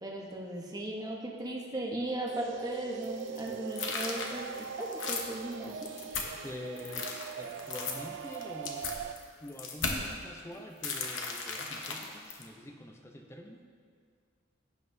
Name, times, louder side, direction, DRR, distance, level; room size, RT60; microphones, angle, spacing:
voice 1, 0.0-5.8, right 1 dB, 20° right, -2 dB, 0.9 m, -37 dB
sound 1, 2.3-9.1, right 7 dB, 65° right, 0.3 m, -42 dB
sound 2, 3.0-6.5 6.8-10.2 10.8-12.5, left 4 dB, 70° left, 1.0 m, -36 dB
voice 2, 6.3-9.0 9.4-13.6, left 1 dB, 15° left, 2 dB, 0.5 m, -46 dB
16.0 x 5.8 x 2.7 m, 2.1 s
head